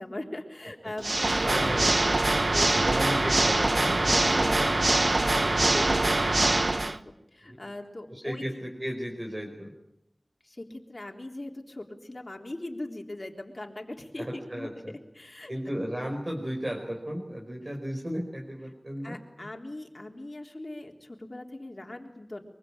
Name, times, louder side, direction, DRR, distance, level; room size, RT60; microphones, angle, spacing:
voice 1, 0.0-3.3 4.0-8.7 10.4-15.5 19.0-22.4, left 1 dB, 45° left, 2 dB, 3.6 m, -40 dB
Water / Mechanisms, 1.0-7.0, right 2 dB, 55° right, 1.1 m, -24 dB
voice 2, 1.4-2.0 2.6-4.5 7.5-7.6 8.1-9.7 14.2-14.9 15.5-19.2, equal, 35° right, 0 dB, 5.2 m, -34 dB
24.0 x 23.5 x 8.9 m, 0.80 s
wide cardioid pair, 50°, 0 cm